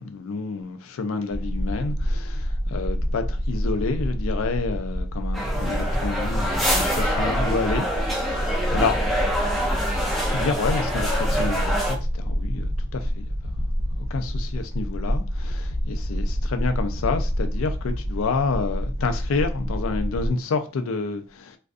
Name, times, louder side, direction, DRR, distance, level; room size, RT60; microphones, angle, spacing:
voice 1, 0.0-9.0 10.3-13.6 13.9-21.6, left 4 dB, 70° left, 0.4 m, -29 dB
sound 1, 1.3-20.3, equal, 80° right, 1.0 m, -27 dB
sound 2, 5.3-11.9, equal, ahead, 0.3 m, -26 dB
2.5 x 2.3 x 2.3 m
head